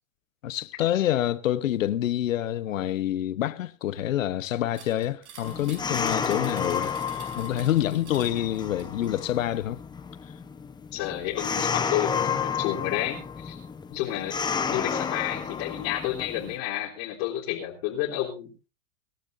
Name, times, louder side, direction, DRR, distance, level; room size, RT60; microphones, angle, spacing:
voice 1, 0.4-9.8, left 12 dB, 80° left, 1.1 m, -27 dB
sound 1, 4.7-9.2, right 7 dB, 65° right, 5.5 m, -48 dB
sound 2, 5.4-16.6, left 6 dB, 10° left, 1.0 m, -31 dB
voice 2, 10.9-13.6 13.9-18.7, left 13 dB, 50° left, 3.6 m, -30 dB
24.5 x 11.5 x 2.6 m
hypercardioid pair, 130°, 39 cm